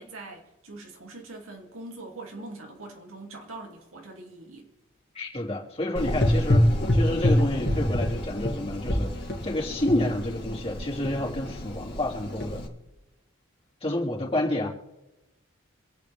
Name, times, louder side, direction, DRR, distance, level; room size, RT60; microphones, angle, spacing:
voice 1, 0.0-4.7, right 2 dB, 90° right, 2.8 m, -42 dB
voice 2, 5.1-12.6 13.8-14.7, left 1 dB, 25° left, 3.2 m, -29 dB
Gurgling / Engine, 6.0-12.7, left 1 dB, 50° left, 2.3 m, -26 dB
26.5 x 9.2 x 3.5 m
head